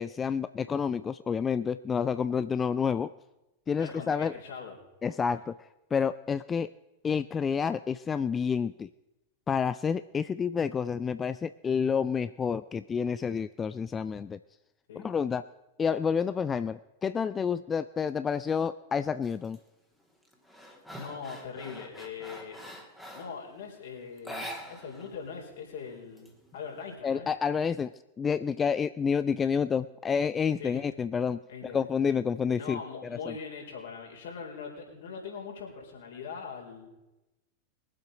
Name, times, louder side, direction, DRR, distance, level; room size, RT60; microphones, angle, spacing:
voice 1, 0.0-3.1 3.7-4.3 5.0-5.5 5.9-6.7 7.0-8.9 9.5-14.4 15.0-15.4 15.8-19.6 27.0-27.9 28.2-32.8 33.3-33.4, left 6 dB, 20° left, 14 dB, 0.3 m, -29 dB
voice 2, 3.8-4.8 14.9-15.1 21.0-22.6 23.1-27.3 30.6-30.9 31.5-31.8 32.6-36.9, left 6 dB, 60° left, 0 dB, 4.2 m, -41 dB
sound 1, 19.2-19.6 20.0-23.4 24.2-25.1 25.4-25.5 25.9-26.8, equal, 5° left, 2.3 m, -44 dB
22.0 x 7.8 x 5.0 m, 0.99 s
figure-of-eight pair, 90°, 0 cm